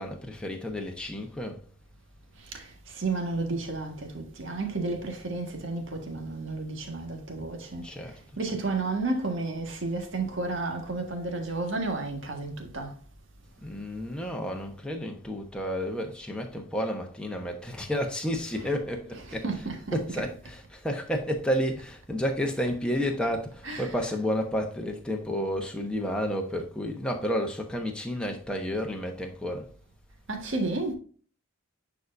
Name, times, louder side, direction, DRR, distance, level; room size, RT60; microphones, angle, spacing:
voice 1, 0.0-1.6 7.8-8.2 13.6-19.5 19.9-29.7, equal, 5° left, 1.0 m, -31 dB
voice 2, 3.0-7.8 8.4-12.9 19.4-20.0 23.6-23.9 30.3-30.9, right 3 dB, 55° right, 1.7 m, -31 dB
9.2 x 4.7 x 2.6 m
head